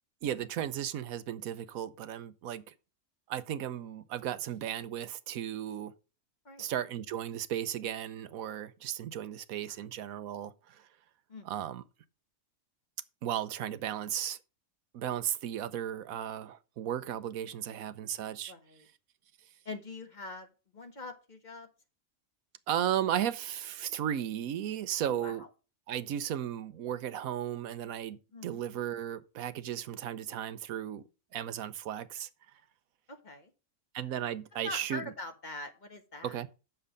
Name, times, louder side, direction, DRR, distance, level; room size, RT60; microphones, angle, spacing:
voice 1, 0.2-2.6 3.3-5.9 6.6-10.8 11.4-11.8 13.2-14.4 14.9-18.5 22.7-25.4 25.9-31.0 31.3-32.3 33.9-35.0 36.2-36.5, right 10 dB, 85° right, 1.2 m, -35 dB
voice 2, 18.5-18.9 19.6-21.7 25.0-25.5 28.3-28.6 33.1-33.5 34.6-36.4, left 2 dB, 35° left, 1.4 m, -43 dB
9.1 x 7.0 x 5.2 m
omnidirectional pair, 1.4 m